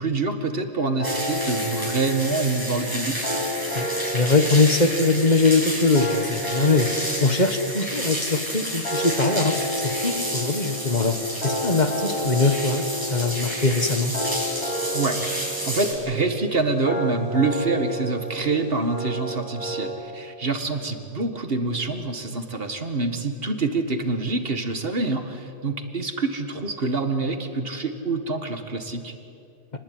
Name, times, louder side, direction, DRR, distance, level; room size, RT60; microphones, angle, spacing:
voice 1, 0.0-3.2 14.9-15.2 15.7-29.1, right 3 dB, 55° right, 7 dB, 2.1 m, -26 dB
sound 1, 1.0-19.9, right 1 dB, 80° left, 6.1 m, -31 dB
sound 2, 1.0-15.9, equal, 20° right, 7.8 m, -31 dB
voice 2, 3.7-6.9 7.2-11.2 11.4-12.8 13.1-14.1, left 3 dB, 40° left, 8 dB, 1.7 m, -22 dB
28.5 x 20.0 x 9.5 m, 2.7 s
omnidirectional pair, 1.1 m